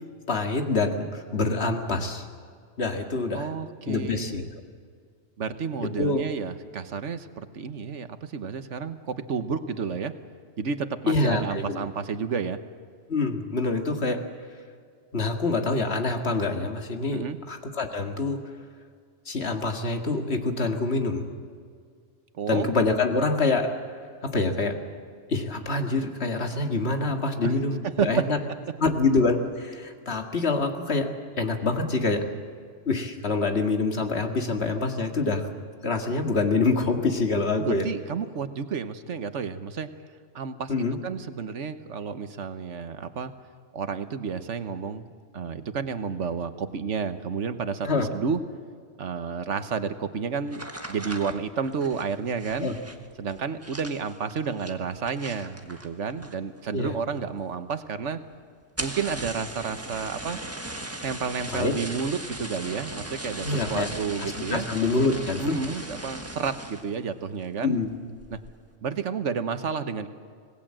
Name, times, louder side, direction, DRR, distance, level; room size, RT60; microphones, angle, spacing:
voice 1, 0.3-2.3 2.8-3.5 3.9-4.4 5.8-6.3 11.1-11.9 13.1-14.3 15.1-18.4 19.3-21.3 22.5-23.8 24.2-24.8 25.3-28.4 28.8-32.3 32.9-35.5 35.8-37.9 40.7-41.0 47.8-48.1 52.6-52.8 56.7-57.0 61.5-61.8 63.4-63.9 64.2-65.6 67.6-67.9, left 3 dB, 65° left, 4 dB, 2.2 m, -26 dB
voice 2, 3.3-4.4 5.4-10.1 10.6-12.6 17.1-17.4 22.3-22.7 27.4-27.5 28.0-28.3 37.6-39.9 40.3-43.3 43.7-45.1 45.3-48.4 49.0-52.7 53.2-58.2 58.8-60.4 61.0-64.6 65.4-67.7 68.3-68.4 68.8-70.1, right 6 dB, 85° right, 10 dB, 1.5 m, -31 dB
sound 1, 50.5-56.6 56.9-57.4 57.7-57.8 58.1-58.2 58.6-67.0 67.4-67.8 68.2-68.6, right 1 dB, 10° right, 1.5 m, -38 dB
26.0 x 19.0 x 7.6 m, 2.1 s
omnidirectional pair, 1.2 m